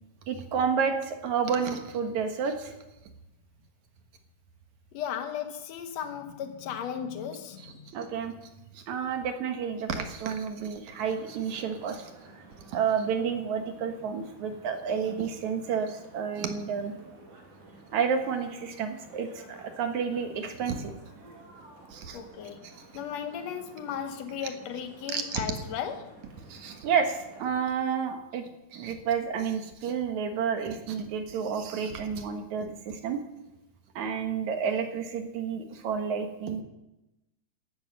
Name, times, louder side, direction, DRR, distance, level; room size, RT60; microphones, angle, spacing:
voice 1, 0.3-2.7 7.6-8.3 8.7-12.1 12.7-16.9 17.9-20.9 21.9-22.2 25.1-25.4 26.5-28.5 28.7-33.2 34.0-36.6, right 6 dB, 60° right, 2.3 m, -30 dB
voice 2, 4.9-8.0 22.1-22.7 22.9-26.2, left 8 dB, 85° left, 1.5 m, -36 dB
sound 1, 10.9-27.4, right 2 dB, 45° right, 3.4 m, -52 dB
15.0 x 11.0 x 6.4 m
omnidirectional pair, 4.3 m